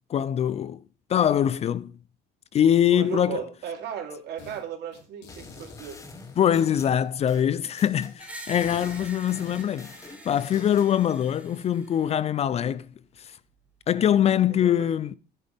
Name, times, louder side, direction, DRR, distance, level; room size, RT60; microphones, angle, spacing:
voice 1, 0.1-0.8 1.1-1.9 2.5-3.4 6.4-10.0 10.2-12.9 13.2-13.4 13.9-15.1, left 9 dB, 35° left, 0.5 m, -23 dB
voice 2, 2.9-6.0 14.5-14.9, right 9 dB, 60° right, 3.2 m, -36 dB
sound 1, 4.4-4.6 4.9-7.0 7.5-10.9, left 5 dB, 80° left, 4.4 m, -51 dB
sound 2, 5.3-8.1 8.5-10.9, left 3 dB, 15° left, 1.6 m, -46 dB
Screech, 8.2-12.2, right 1 dB, 5° right, 2.0 m, -45 dB
14.5 x 9.8 x 3.5 m
cardioid pair, 145°, 19 cm